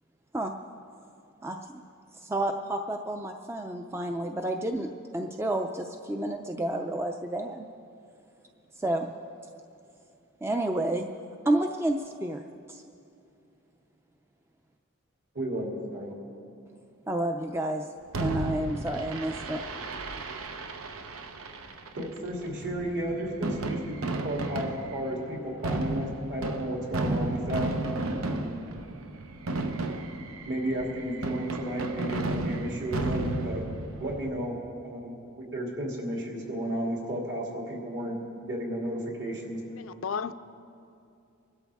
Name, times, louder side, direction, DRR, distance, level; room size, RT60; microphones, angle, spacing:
voice 1, 2.2-7.7 8.8-9.1 10.4-11.1 11.4-12.4 12.7-12.8 17.1-17.9 18.2-19.6, right 1 dB, 10° right, 4 dB, 0.4 m, -30 dB
voice 2, 15.3-16.1 22.0-27.7 28.2-28.5 30.4-33.6 34.0-34.6 34.8-39.8, equal, 60° right, -1 dB, 2.9 m, -33 dB
Fireworks, 18.1-34.3, right 2 dB, 85° right, 0.8 m, -33 dB
voice 3, 39.8-40.3, left 6 dB, 70° left, 12 dB, 0.5 m, -33 dB
25.0 x 12.5 x 3.6 m, 2.6 s
head